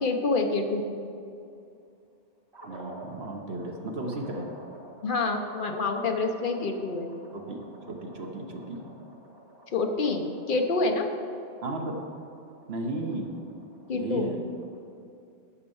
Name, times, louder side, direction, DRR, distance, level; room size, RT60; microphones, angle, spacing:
voice 1, 0.0-0.8 5.0-7.1 9.7-11.1 13.9-14.3, left 3 dB, 50° left, 4 dB, 1.0 m, -27 dB
sound 1, 2.5-14.8, right 1 dB, 20° right, 1.6 m, -50 dB
voice 2, 2.6-4.5 7.3-8.8 11.6-12.0 12.7-13.4 13.9-14.4, right 2 dB, 65° right, 2 dB, 1.4 m, -34 dB
10.0 x 6.6 x 7.0 m, 2.6 s
omnidirectional pair, 1.1 m